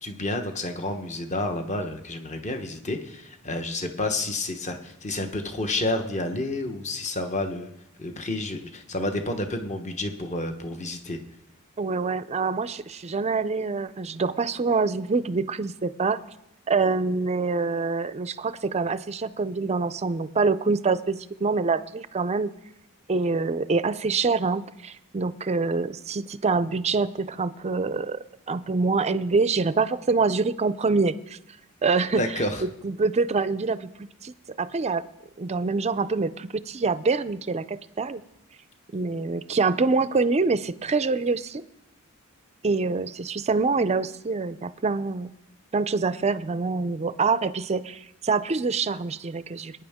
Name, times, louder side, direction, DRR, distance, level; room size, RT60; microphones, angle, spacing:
voice 1, 0.0-7.7 8.0-11.2 32.2-32.6, left 2 dB, 30° left, 6 dB, 1.1 m, -30 dB
voice 2, 11.8-16.2 16.7-22.5 23.1-28.2 28.5-31.4 31.8-32.2 32.8-35.0 35.4-38.2 38.9-41.6 42.6-45.3 45.7-49.7, right 4 dB, 30° right, 14 dB, 0.5 m, -25 dB
22.0 x 9.7 x 3.6 m, 0.88 s
head